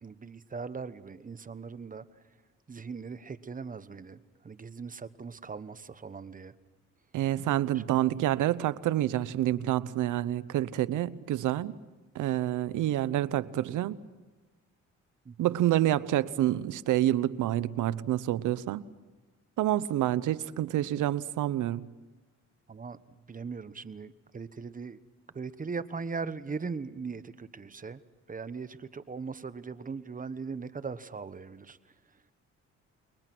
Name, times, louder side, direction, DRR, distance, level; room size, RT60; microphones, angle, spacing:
voice 1, 0.0-2.0 2.7-6.5 7.7-7.8 15.2-15.6 22.7-25.0 25.3-28.0 28.3-31.8, right 5 dB, 25° right, 1.1 m, -39 dB
voice 2, 7.1-11.8 12.1-14.0 15.4-18.8 19.6-21.9, right 13 dB, 80° right, 0.9 m, -28 dB
30.0 x 22.0 x 6.1 m
cardioid pair, 90°, 30 cm